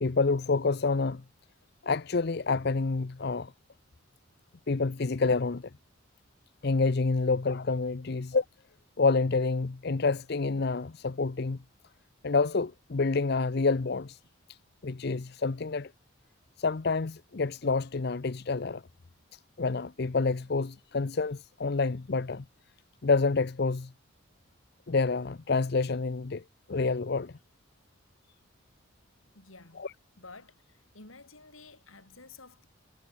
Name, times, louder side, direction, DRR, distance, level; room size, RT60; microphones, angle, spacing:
voice 1, 0.0-1.2 1.8-3.5 4.7-5.7 6.6-8.4 9.0-11.6 12.2-14.2 14.5-14.6 14.8-15.9 16.6-18.8 19.3-22.4 23.0-23.9 24.9-26.4 26.7-27.3 29.8-29.9, left 4 dB, 50° left, 0.6 m, -28 dB
voice 2, 29.3-29.9 30.2-32.7, left 3 dB, 80° left, 5.3 m, -51 dB
head